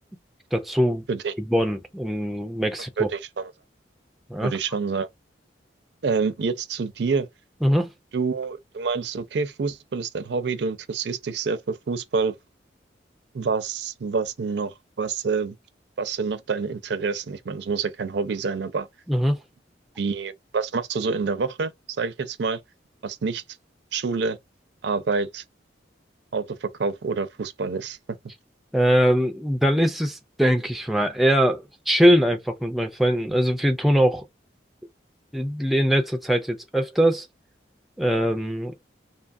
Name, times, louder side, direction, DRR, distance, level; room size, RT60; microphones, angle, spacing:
voice 1, 0.5-1.0 1.5-3.1 4.3-4.5 7.6-7.9 19.1-19.4 28.7-34.2 35.3-37.3 38.0-38.7, equal, ahead, 0.3 m, -22 dB
voice 2, 3.0-3.5 4.4-5.1 6.0-7.3 8.1-12.4 13.3-15.5 16.0-18.9 20.0-21.7 22.0-22.6 23.0-23.4 23.9-24.4 24.8-25.4 26.3-28.0, right 4 dB, 70° right, 0.4 m, -27 dB
2.8 x 2.3 x 2.5 m
head